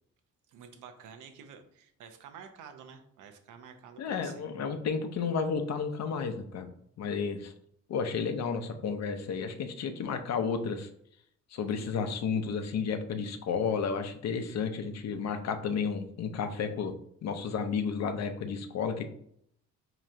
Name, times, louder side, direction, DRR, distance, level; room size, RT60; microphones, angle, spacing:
voice 1, 0.5-4.5, right 7 dB, 85° right, 7 dB, 0.6 m, -50 dB
voice 2, 4.0-6.7 7.0-7.5 7.9-10.9 11.5-16.9 17.2-19.1, left 6 dB, 60° left, 7 dB, 0.6 m, -32 dB
2.9 x 2.5 x 4.3 m, 0.67 s
cardioid pair, 90°, 30 cm